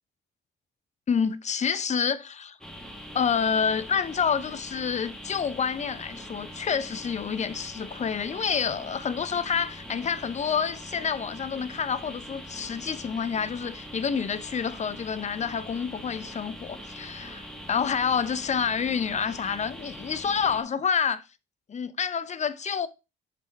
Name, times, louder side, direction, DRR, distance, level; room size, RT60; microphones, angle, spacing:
voice 1, 1.1-2.6 3.1-21.2 21.7-22.9, left 6 dB, 35° left, 0.6 m, -28 dB
sound 1, 2.6-20.6, equal, 5° left, 1.6 m, -42 dB
6.0 x 5.1 x 4.4 m
cardioid pair, 90°, 20 cm